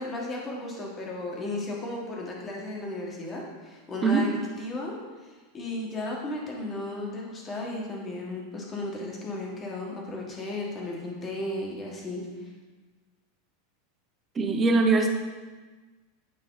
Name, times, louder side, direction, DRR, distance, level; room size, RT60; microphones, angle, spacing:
voice 1, 0.0-4.9 5.5-12.2, left 2 dB, 20° left, -2 dB, 1.5 m, -34 dB
voice 2, 14.3-15.1, right 3 dB, 20° right, 4 dB, 0.8 m, -21 dB
9.5 x 4.9 x 3.9 m, 1.3 s
supercardioid pair, 155°, 0 cm